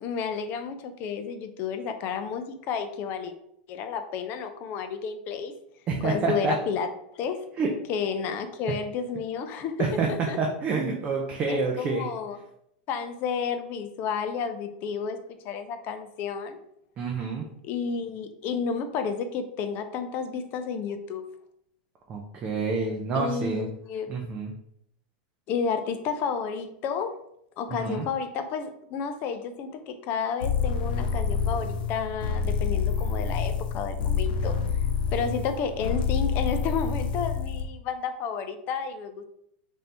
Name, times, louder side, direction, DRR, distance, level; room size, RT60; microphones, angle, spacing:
voice 1, 0.0-3.3 3.7-5.5 6.0-7.4 7.9-10.4 11.5-12.4 12.9-16.6 17.6-21.3 23.1-24.1 25.5-27.2 27.6-34.5 35.1-39.2, left 6 dB, 40° left, 8 dB, 0.4 m, -31 dB
voice 2, 5.9-6.5 7.6-7.7 9.8-10.1 10.4-12.1 17.0-17.4 22.1-23.7 24.1-24.5 27.7-28.1, right 4 dB, 25° right, 1 dB, 0.5 m, -28 dB
sound 1, 30.4-37.7, left 6 dB, 85° left, 0.6 m, -27 dB
3.3 x 2.6 x 4.2 m, 0.73 s
supercardioid pair, 145°, 5 cm